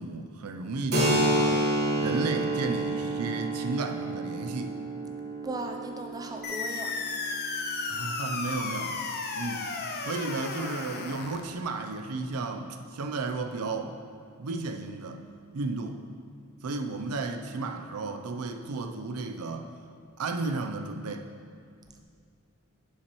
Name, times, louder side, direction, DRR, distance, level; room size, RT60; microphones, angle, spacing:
voice 1, 0.0-1.6 2.0-4.8 7.9-9.0 9.3-9.7 10.0-14.0 14.4-15.2 15.5-16.0 16.6-19.7 20.2-21.3, right 3 dB, 85° right, 5 dB, 0.5 m, -33 dB
Keyboard (musical), 0.9-8.3, right 1 dB, 45° right, 1.3 m, -29 dB
voice 2, 5.4-6.9, right 2 dB, 15° right, 3 dB, 0.4 m, -37 dB
sound 1, 6.4-11.4, left 4 dB, 45° left, 0.6 m, -34 dB
9.9 x 5.6 x 3.0 m, 2.2 s
head